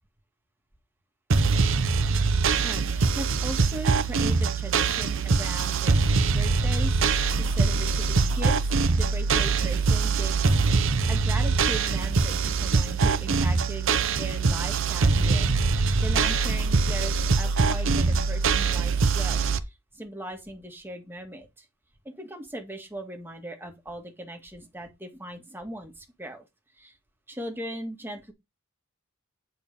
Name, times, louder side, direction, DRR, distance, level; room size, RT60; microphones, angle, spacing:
sound 1, 1.3-19.6, right 4 dB, 65° right, 0.7 m, -23 dB
voice 1, 2.6-5.9 6.3-10.4 11.1-21.7 22.1-26.4 26.7-27.0 27.3-28.3, right 1 dB, 10° right, 1.8 m, -39 dB
8.8 x 4.3 x 5.3 m
head